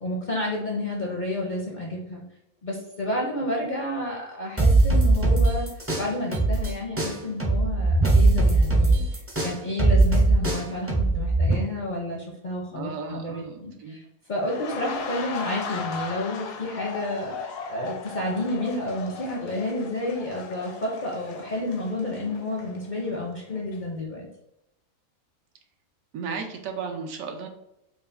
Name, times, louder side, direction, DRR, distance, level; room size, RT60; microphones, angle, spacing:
voice 1, 0.0-2.2 2.6-5.7 5.9-14.0 14.3-24.3, left 1 dB, 55° left, -3 dB, 0.5 m, -30 dB
sound 1, 4.6-6.7 7.0-11.5, right 2 dB, 20° right, 0.3 m, -20 dB
voice 2, 12.7-14.0 26.1-27.5, right 5 dB, 75° right, 4 dB, 1.0 m, -34 dB
sound 2, 14.4-23.2 23.6-23.8, left 5 dB, 75° left, 0.9 m, -37 dB
4.8 x 2.4 x 2.5 m, 0.84 s
omnidirectional pair, 1.5 m